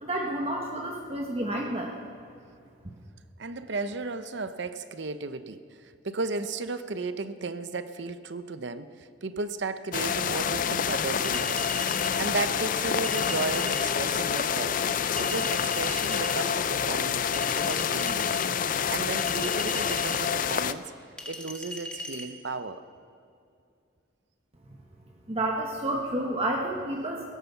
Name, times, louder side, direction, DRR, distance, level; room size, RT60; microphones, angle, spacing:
voice 1, 0.0-2.0 25.3-27.3, right 1 dB, 30° right, 0 dB, 1.2 m, -30 dB
voice 2, 3.4-11.6 12.2-14.8 15.2-18.3 18.9-20.9 21.3-22.8, right 3 dB, 60° right, 11 dB, 0.7 m, -34 dB
sound 1, 9.9-20.7, left 7 dB, 45° left, 0.4 m, -27 dB
Chink clink, 11.2-12.2 13.0-13.9 15.2-16.4 17.3-18.5 19.2-20.2 21.2-22.3, equal, 5° left, 1.5 m, -38 dB
17.0 x 10.0 x 7.1 m, 2.4 s
head